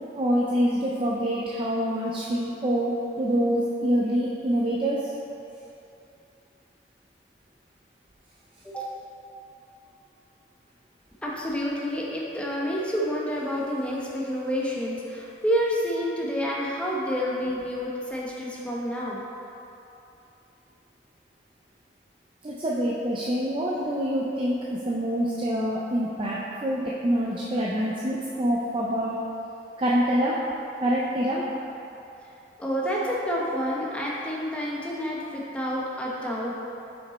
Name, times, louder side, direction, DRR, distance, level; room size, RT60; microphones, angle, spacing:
voice 1, 0.2-5.0 22.4-29.2 29.8-30.4 30.8-31.4, equal, 30° right, -5 dB, 0.5 m, -26 dB
voice 2, 11.2-19.2 32.6-36.6, equal, 5° left, -5 dB, 0.9 m, -29 dB
5.9 x 5.2 x 4.1 m, 2.8 s
head